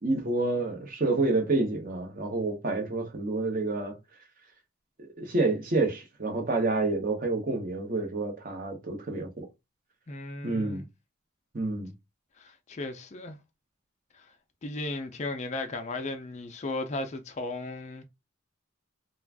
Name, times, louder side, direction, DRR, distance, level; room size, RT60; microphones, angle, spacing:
voice 1, 0.0-3.9 5.0-9.5 10.4-10.9 11.5-11.9, right 2 dB, 40° right, 0.8 m, -28 dB
voice 2, 10.1-10.8 12.4-13.4 14.2-14.3 14.6-18.0, left 2 dB, 30° left, 0.4 m, -35 dB
2.4 x 2.2 x 3.4 m
head